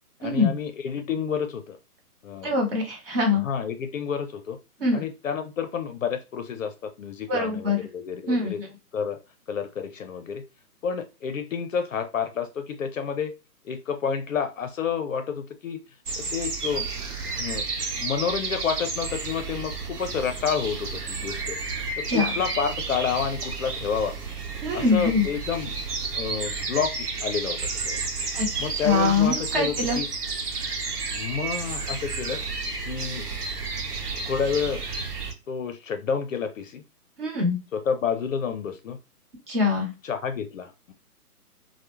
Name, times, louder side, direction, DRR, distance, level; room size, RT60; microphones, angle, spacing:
voice 1, 0.2-1.8 2.2-2.5 3.3-4.6 4.9-8.6 8.9-9.2 9.5-10.4 10.8-13.3 13.6-15.8 16.2-16.9 17.4-17.7 18.0-21.6 22.0-24.2 24.7-25.7 26.1-28.0 28.6-30.1 31.1-32.4 32.8-33.2 34.3-34.8 35.5-36.8 37.7-39.0 40.0-40.9, left 7 dB, 60° left, 8 dB, 0.5 m, -29 dB
voice 2, 2.4-3.4 4.8-5.0 7.3-7.8 8.3-8.7 22.1-22.3 24.6-25.2 28.3-28.5 28.8-30.0 37.2-37.6 39.5-39.9, left 3 dB, 35° right, 1 dB, 0.9 m, -23 dB
sound 1, 16.1-35.3, right 4 dB, 75° right, 0.9 m, -31 dB
2.2 x 2.1 x 3.0 m, 0.28 s
hypercardioid pair, 145°, 46 cm